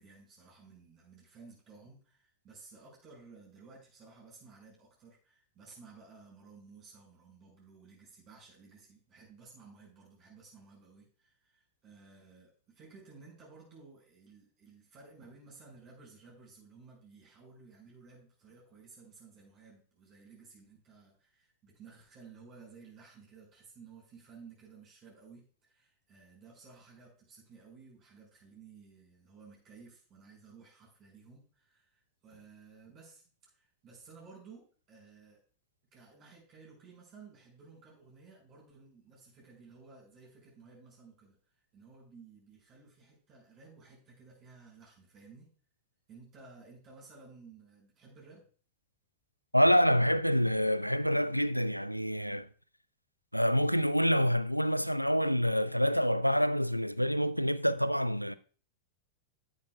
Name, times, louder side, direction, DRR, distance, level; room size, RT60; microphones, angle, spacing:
voice 1, 0.0-35.4 35.9-45.5 46.1-48.5, right 4 dB, 35° right, 5.3 m, -55 dB
voice 2, 49.5-52.5 53.3-58.4, equal, 90° left, 0.4 m, -27 dB
12.0 x 9.5 x 2.3 m
figure-of-eight pair, 90°, 0 cm